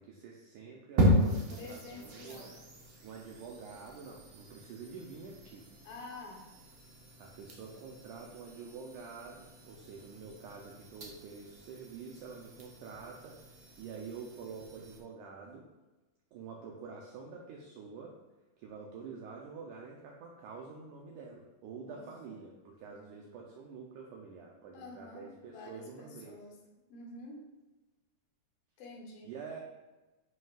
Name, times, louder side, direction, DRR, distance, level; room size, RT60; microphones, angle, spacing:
voice 1, 0.0-2.5 3.0-5.7 7.2-13.4 13.8-15.7 16.3-18.2 18.6-26.4 29.2-29.6, right 5 dB, 85° right, -1 dB, 1.8 m, -47 dB
sound 1, 1.0-15.0, equal, 65° right, 1.3 m, -36 dB
voice 2, 1.5-2.5 5.8-6.4 21.7-22.0 22.3-22.4 22.8-23.1 24.7-26.5 26.9-27.4 28.8-29.3, left 2 dB, 70° left, -1 dB, 2.8 m, -48 dB
11.0 x 5.5 x 2.5 m, 1.1 s
omnidirectional pair, 4.4 m